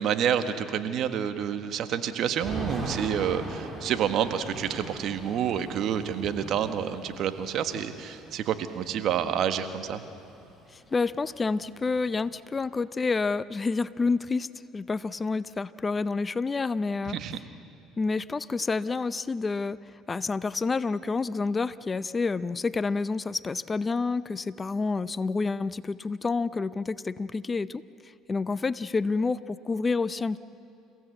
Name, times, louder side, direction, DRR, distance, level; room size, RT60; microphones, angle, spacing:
voice 1, 0.0-10.0 17.1-17.4, right 9 dB, 60° right, 9 dB, 1.5 m, -28 dB
Thunder / Rain, 2.4-10.3 10.5-10.6 10.9-12.3, right 1 dB, 15° right, 4.3 m, -40 dB
voice 2, 10.7-17.2 18.0-19.8 20.1-30.4, left 4 dB, 25° left, 16 dB, 0.6 m, -29 dB
29.5 x 16.0 x 8.0 m, 2.7 s
supercardioid pair, 80°, 0 cm